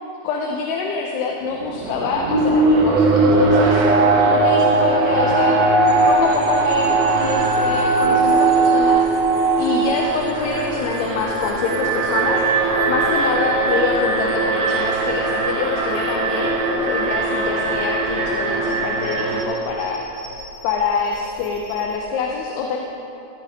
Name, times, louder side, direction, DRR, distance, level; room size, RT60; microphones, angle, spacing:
voice 1, 0.2-5.6 6.1-9.1 9.6-12.4 12.9-20.0 20.6-22.8, left 5 dB, 80° left, 0 dB, 2.8 m, -25 dB
Alarm, 1.5-19.4, right 3 dB, 90° right, 1.4 m, -19 dB
sound 1, 5.8-22.1, left 2 dB, 60° left, 1.4 m, -39 dB
15.0 x 12.5 x 3.6 m, 3.0 s
omnidirectional pair, 4.7 m